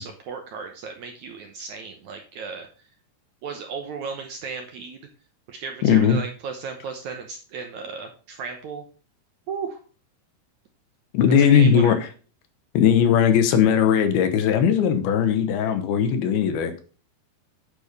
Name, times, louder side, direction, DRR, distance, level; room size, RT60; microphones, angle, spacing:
voice 1, 0.0-2.7 3.4-5.0 5.5-8.8 9.5-9.8 11.4-12.0, right 5 dB, 70° right, 4 dB, 1.9 m, -35 dB
voice 2, 5.8-6.2 11.1-12.1 12.7-16.7, left 8 dB, 90° left, 8 dB, 3.0 m, -18 dB
9.3 x 5.1 x 5.2 m, 0.38 s
omnidirectional pair, 4.4 m